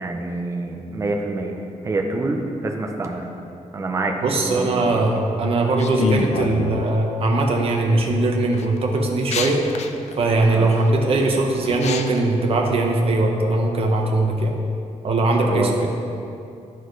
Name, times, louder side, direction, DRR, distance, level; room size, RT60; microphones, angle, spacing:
voice 1, 0.0-3.3 3.7-5.0 10.5-10.7 15.5-15.8, right 2 dB, 25° right, 2 dB, 0.6 m, -27 dB
voice 2, 4.2-9.6 10.1-14.5 15.0-15.9, right 2 dB, 50° right, 1 dB, 0.9 m, -20 dB
sound 1, 5.8-6.9 7.6-8.0 8.5-12.2, left 5 dB, 60° left, 0.5 m, -27 dB
11.0 x 4.6 x 4.6 m, 2.6 s
wide cardioid pair, 180°, 13 cm